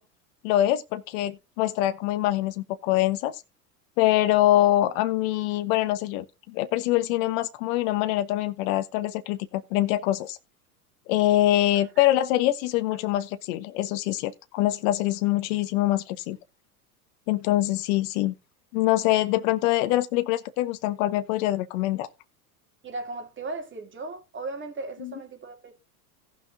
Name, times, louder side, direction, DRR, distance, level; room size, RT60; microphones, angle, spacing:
voice 1, 0.4-3.4 4.0-10.4 11.1-16.4 17.3-18.3 18.7-22.1 25.0-25.1, left 15 dB, 60° left, 1.1 m, -24 dB
voice 2, 22.8-25.7, right 3 dB, 25° right, 3.1 m, -37 dB
17.5 x 6.0 x 2.7 m
hypercardioid pair, 100°, 47 cm